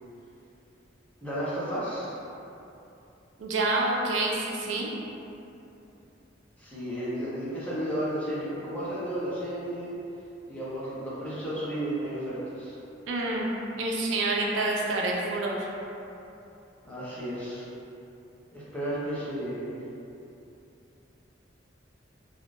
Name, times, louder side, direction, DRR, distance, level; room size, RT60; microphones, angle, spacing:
voice 1, 1.2-2.2 6.6-9.9 10.5-12.8 16.8-17.7 18.5-19.8, right 1 dB, 10° left, -10 dB, 0.7 m, -33 dB
voice 2, 3.4-5.0 13.1-15.7, right 2 dB, 75° right, -2 dB, 0.4 m, -28 dB
3.5 x 2.5 x 2.4 m, 2.8 s
head